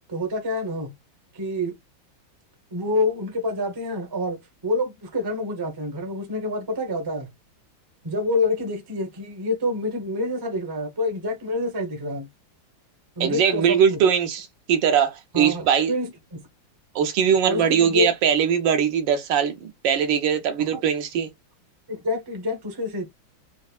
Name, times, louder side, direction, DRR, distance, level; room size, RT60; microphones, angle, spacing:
voice 1, 0.1-0.9 1.3-1.7 2.7-7.3 8.0-12.3 13.2-14.0 15.3-16.4 17.4-18.0 20.7-20.8 21.9-23.1, left 2 dB, 20° right, 0.6 m, -27 dB
voice 2, 13.2-15.9 16.9-21.3, right 8 dB, 70° right, 1.4 m, -21 dB
4.3 x 2.5 x 2.4 m
omnidirectional pair, 2.2 m